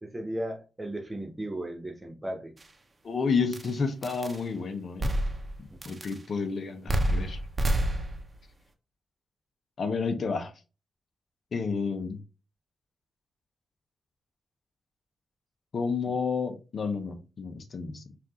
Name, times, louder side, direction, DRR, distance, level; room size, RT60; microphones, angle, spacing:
voice 1, 0.0-2.5 5.9-6.0 16.0-16.1, right 1 dB, 15° right, 1.1 m, -36 dB
sound 1, 2.6-2.7 3.5-3.7 4.0-4.4 5.0-5.6 5.8-6.2 6.9-8.4, right 1 dB, 35° right, 0.8 m, -28 dB
voice 2, 3.0-5.1 5.8-7.4 9.8-10.5 11.5-12.2 15.7-18.0, left 5 dB, 60° left, 0.7 m, -30 dB
5.8 x 2.5 x 2.9 m
cardioid pair, 90°, 0 cm